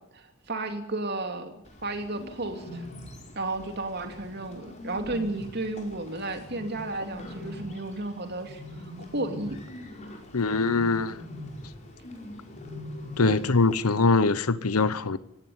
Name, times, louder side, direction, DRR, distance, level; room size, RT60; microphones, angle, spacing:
voice 1, 0.1-1.5 1.8-2.8 3.3-8.6 9.1-9.6 13.2-13.6, right 2 dB, 45° right, 3.0 m, -33 dB
Bird, 1.6-13.8, left 1 dB, 30° left, 4.9 m, -42 dB
voice 2, 10.3-11.2 13.2-15.2, left 3 dB, 85° left, 1.0 m, -23 dB
18.0 x 16.5 x 9.6 m
head